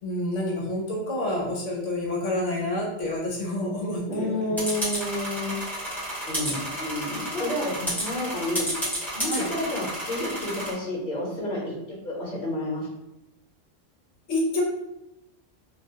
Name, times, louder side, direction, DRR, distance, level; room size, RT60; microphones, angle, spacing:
voice 1, 0.0-4.6 7.8-7.9 9.3-9.5 14.3-14.6, left 1 dB, 75° left, -2 dB, 0.9 m, -28 dB
voice 2, 4.1-5.5 6.2-8.7 9.1-11.7 12.0-12.9, left 1 dB, 45° left, -5 dB, 1.0 m, -30 dB
sound 1, 4.6-10.7, right 1 dB, ahead, 0.6 m, -31 dB
2.4 x 2.2 x 2.7 m, 0.90 s
omnidirectional pair, 1.3 m